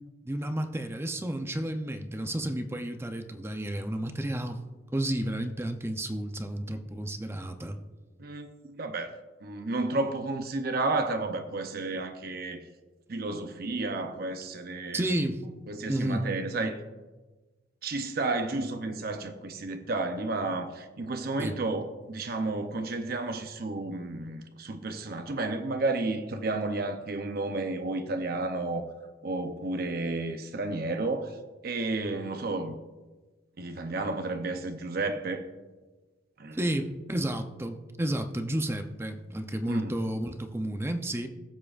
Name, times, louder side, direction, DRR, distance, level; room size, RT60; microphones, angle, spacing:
voice 1, 0.2-4.6 4.9-7.8 14.9-15.4 15.9-16.3 21.4-21.5 36.5-41.3, right 1 dB, 15° right, 0.6 m, -31 dB
voice 2, 8.2-12.6 13.1-15.1 15.7-16.8 17.8-28.9 29.2-31.4 31.6-32.8 33.6-35.4 36.4-36.6 39.7-39.9, right 2 dB, 55° right, 0.7 m, -32 dB
18.0 x 7.5 x 2.5 m
head